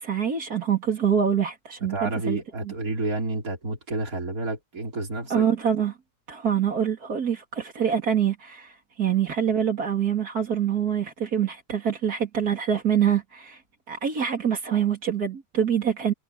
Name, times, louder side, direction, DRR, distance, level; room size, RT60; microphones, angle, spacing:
voice 1, 0.0-2.4 5.3-5.9 6.3-13.6 13.9-16.1, right 8 dB, 85° right, 3.3 m, -25 dB
voice 2, 1.9-5.4, right 3 dB, 65° right, 4.3 m, -30 dB
omnidirectional pair, 1.6 m